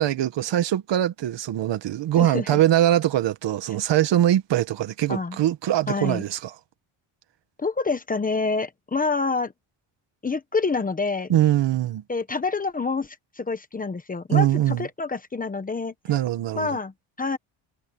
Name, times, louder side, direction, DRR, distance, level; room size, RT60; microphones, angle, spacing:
voice 1, 0.0-6.5 11.3-12.0 14.3-14.9 16.1-16.8, right 12 dB, 60° right, 1.7 m, -22 dB
voice 2, 2.2-2.6 5.1-5.4 5.9-6.2 7.6-9.5 10.2-11.4 12.1-15.9 16.6-17.4, left 4 dB, 15° left, 1.0 m, -27 dB
cardioid pair, 170°, 48 cm